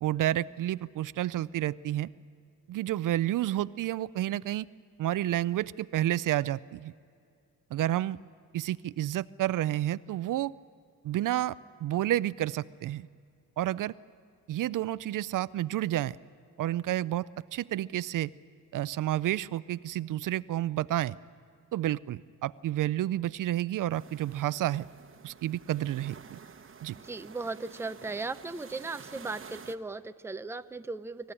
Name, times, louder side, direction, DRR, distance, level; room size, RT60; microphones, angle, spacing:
voice 1, 0.0-2.1 2.7-4.7 5.0-6.9 7.7-8.2 8.5-10.5 11.0-13.1 13.6-13.9 14.5-16.2 16.6-18.3 18.7-21.2 21.7-24.8 25.2-26.4 26.8-26.9, right 13 dB, 65° right, 18 dB, 0.5 m, -30 dB
sound 1, 23.9-29.8, right 6 dB, 35° right, 1.1 m, -50 dB
voice 2, 27.0-31.3, right 3 dB, 5° right, 10 dB, 0.6 m, -37 dB
26.0 x 15.0 x 9.9 m, 2.4 s
cardioid pair, 105°, 34 cm